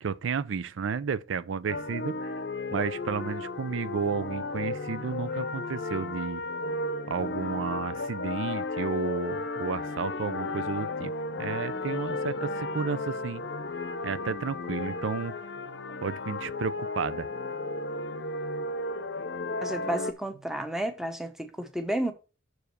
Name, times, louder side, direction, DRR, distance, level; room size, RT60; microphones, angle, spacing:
voice 1, 0.0-2.3 2.7-6.4 7.1-11.1 11.4-13.4 14.0-15.4 16.0-17.3, right 5 dB, 90° right, 0.5 m, -32 dB
sound 1, 1.7-20.1, left 2 dB, 65° left, 0.7 m, -34 dB
voice 2, 19.6-22.1, right 1 dB, ahead, 0.9 m, -31 dB
6.3 x 4.9 x 6.6 m
head